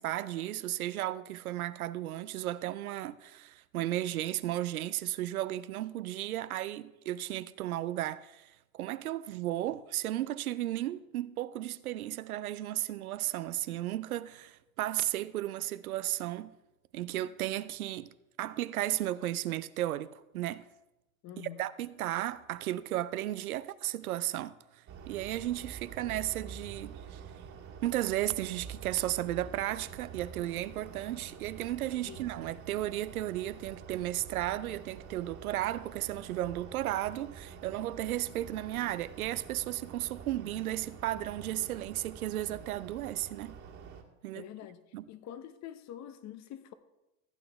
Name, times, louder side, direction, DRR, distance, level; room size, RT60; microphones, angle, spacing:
voice 1, 0.0-16.6 16.9-18.1 18.4-20.7 21.4-27.2 27.8-43.6 44.2-44.4 44.9-45.0, right 14 dB, 85° right, 0.6 m, -34 dB
voice 2, 21.2-21.7 32.0-32.2 44.3-44.8 45.1-46.7, left 11 dB, 40° left, 0.9 m, -45 dB
sound 1, 24.9-44.0, right 6 dB, 40° right, 1.9 m, -47 dB
15.0 x 8.8 x 3.5 m
hypercardioid pair, 90°, 42 cm